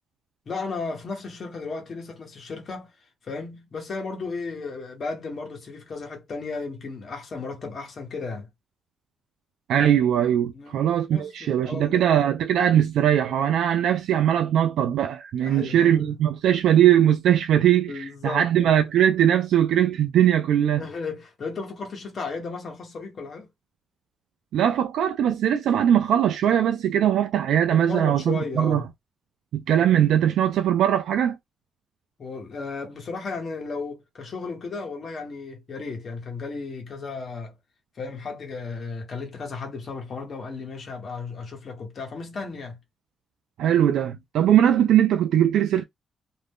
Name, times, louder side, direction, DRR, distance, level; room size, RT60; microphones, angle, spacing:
voice 1, 0.5-2.9 3.2-8.5 10.5-10.8 11.1-12.0 15.4-16.1 17.9-18.8 20.8-23.5 27.7-28.8 32.2-37.5 38.0-42.8, left 4 dB, 40° left, 1.0 m, -34 dB
voice 2, 9.7-20.8 24.5-28.8 29.5-31.4 43.6-45.8, right 10 dB, 80° right, 0.3 m, -20 dB
2.5 x 2.1 x 3.5 m
cardioid pair, 165°, 0 cm